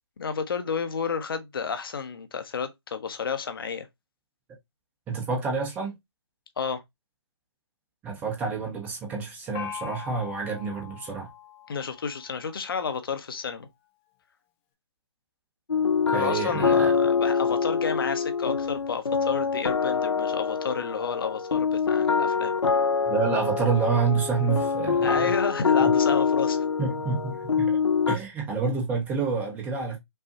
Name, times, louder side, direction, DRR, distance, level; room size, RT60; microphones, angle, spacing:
voice 1, 0.2-3.9 6.6-6.8 11.7-13.7 16.1-22.5 25.0-26.6, left 6 dB, 50° left, 0.9 m, -31 dB
voice 2, 5.1-6.0 8.0-11.3 16.1-16.9 23.1-25.3 25.8-25.9 26.8-27.8 28.1-30.0, right 5 dB, 10° right, 0.8 m, -28 dB
Gong, 9.5-13.1, left 8 dB, 10° left, 0.3 m, -42 dB
sound 1, 15.7-28.2, left 5 dB, 80° left, 0.6 m, -25 dB
5.5 x 2.3 x 2.8 m
figure-of-eight pair, 145°, 15 cm